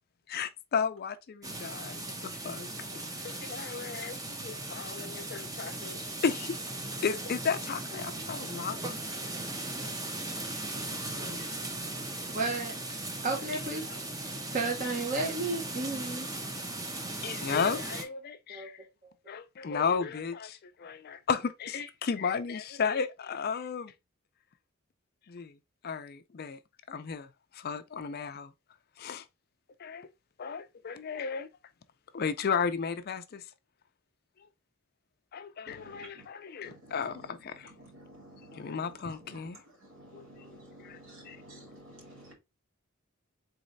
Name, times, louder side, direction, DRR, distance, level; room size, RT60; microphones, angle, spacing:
voice 1, 0.3-2.7 2.9-6.6 7.0-9.0 10.7-11.5 13.9-14.0 17.2-18.8 19.3-23.9 25.3-25.6 25.8-26.6 26.9-28.5 29.0-29.3 29.8-30.1 30.4-31.5 32.1-33.4 35.3-37.7 38.5-39.6 40.1-40.2 40.8-41.0 41.3-41.4, left 6 dB, 45° left, 0.4 m, -34 dB
sound 1, 1.4-18.0, right 2 dB, 15° right, 0.6 m, -38 dB
voice 2, 12.3-13.8 14.2-16.3 18.5-18.7 19.0-19.1, right 3 dB, 40° right, 1.0 m, -33 dB
voice 3, 35.7-36.3 36.6-42.3, right 1 dB, 65° right, 2.4 m, -52 dB
4.0 x 3.2 x 3.9 m
head